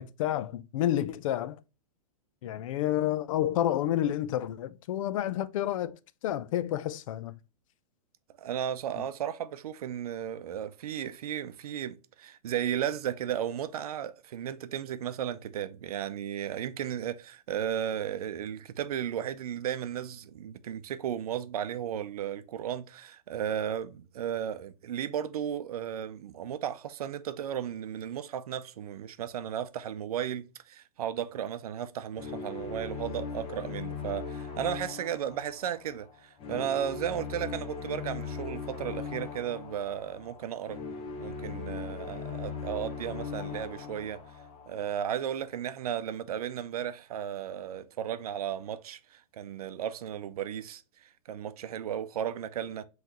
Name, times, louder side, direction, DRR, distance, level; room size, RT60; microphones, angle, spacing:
voice 1, 0.0-1.6 2.4-6.0 6.2-7.3 9.0-9.1, left 12 dB, 60° left, 0.5 m, -30 dB
voice 2, 8.4-40.8 41.2-44.2 44.7-52.8, right 9 dB, 75° right, 0.6 m, -35 dB
sound 1, 32.1-45.2, left 5 dB, 30° left, 1.1 m, -39 dB
5.5 x 3.1 x 3.0 m
hypercardioid pair, 125°, 19 cm